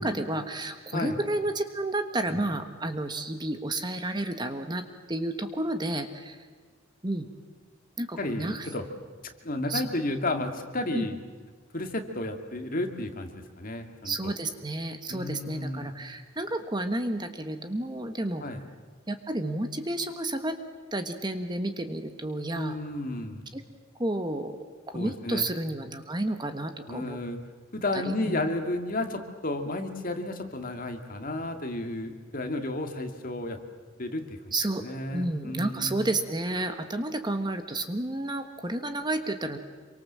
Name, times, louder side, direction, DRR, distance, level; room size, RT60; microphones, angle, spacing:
voice 1, 0.0-6.5 7.0-7.3 8.0-8.7 9.7-9.9 10.9-11.1 14.0-18.4 19.1-20.6 20.9-22.8 23.5-23.6 24.0-24.6 24.9-27.2 27.9-28.4 34.5-34.8 35.1-39.6, right 1 dB, 20° right, 8 dB, 1.4 m, -31 dB
voice 2, 8.2-8.8 9.4-11.2 11.7-14.3 15.1-15.9 18.4-18.6 22.5-23.4 24.9-25.5 26.9-27.4 27.7-33.6 34.0-34.4 34.8-36.0, left 2 dB, 45° left, 5 dB, 2.3 m, -32 dB
27.0 x 24.0 x 7.6 m, 1.5 s
head